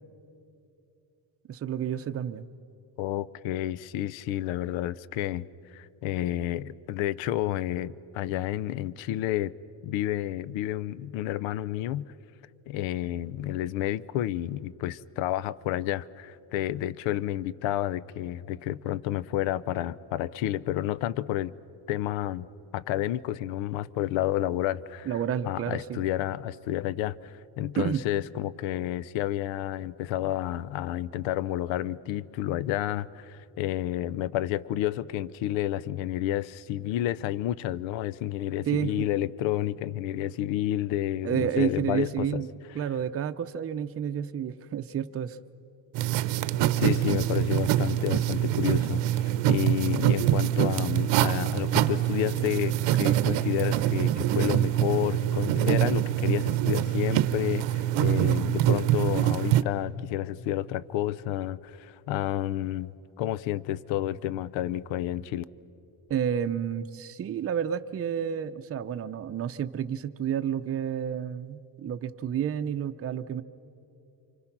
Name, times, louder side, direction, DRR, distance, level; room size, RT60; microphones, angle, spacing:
voice 1, 1.5-2.5 25.1-26.1 27.8-28.0 38.7-39.1 41.2-42.5 42.7-45.4 66.1-73.4, right 9 dB, 30° right, 8 dB, 0.6 m, -30 dB
voice 2, 3.0-9.5 9.8-12.1 12.7-21.5 21.9-22.5 22.7-25.2 25.5-42.4 46.8-62.9 63.2-65.4, left 13 dB, 85° left, 20 dB, 0.6 m, -30 dB
sound 1, 45.9-59.6, right 12 dB, 75° right, 0.8 m, -25 dB
29.0 x 25.5 x 6.0 m, 2.8 s
cardioid pair, 135°, 44 cm